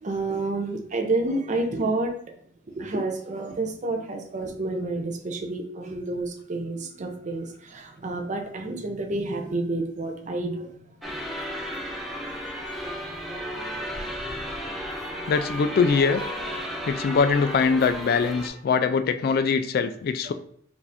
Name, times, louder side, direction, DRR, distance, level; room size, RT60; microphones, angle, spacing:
voice 1, 0.0-2.4 2.7-11.6 13.5-13.7 14.1-15.2 20.3-20.4, right 2 dB, 40° right, 4 dB, 0.6 m, -30 dB
sound 1, 11.0-18.5, equal, ahead, 0.7 m, -34 dB
voice 2, 15.3-16.2 16.9-20.3, left 5 dB, 55° left, 10 dB, 0.3 m, -22 dB
4.9 x 2.6 x 3.4 m, 0.65 s
head